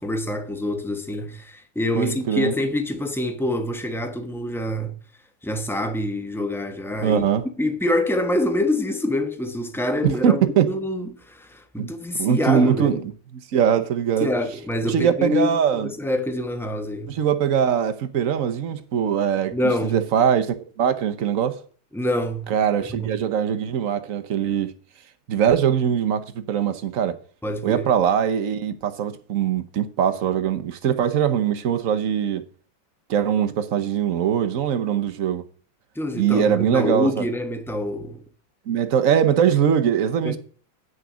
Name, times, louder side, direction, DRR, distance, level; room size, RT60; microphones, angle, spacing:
voice 1, 0.0-4.9 5.4-7.2 7.6-13.0 14.2-17.1 19.5-20.0 21.9-22.5 22.9-23.2 27.4-27.9 35.9-38.2 40.2-40.4, left 1 dB, ahead, 0.5 m, -26 dB
voice 2, 1.9-2.5 7.0-7.4 10.0-10.7 11.8-11.9 12.2-13.0 13.5-14.3 14.8-15.9 17.1-19.5 19.9-21.6 22.5-24.7 25.3-27.2 27.6-32.4 33.1-35.5 36.1-37.3 38.7-40.4, right 8 dB, 55° right, 1.0 m, -21 dB
9.4 x 6.5 x 6.2 m
omnidirectional pair, 2.2 m